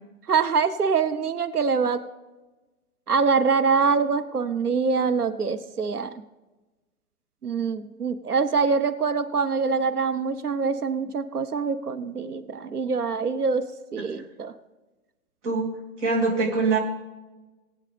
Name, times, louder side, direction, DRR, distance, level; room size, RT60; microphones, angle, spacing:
voice 1, 0.3-2.0 3.1-6.2 7.4-14.5, right 5 dB, 85° right, 9 dB, 0.8 m, -24 dB
voice 2, 15.4-16.8, right 3 dB, 50° right, 0 dB, 2.7 m, -25 dB
19.5 x 9.0 x 3.4 m, 1.1 s
figure-of-eight pair, 110°, 44 cm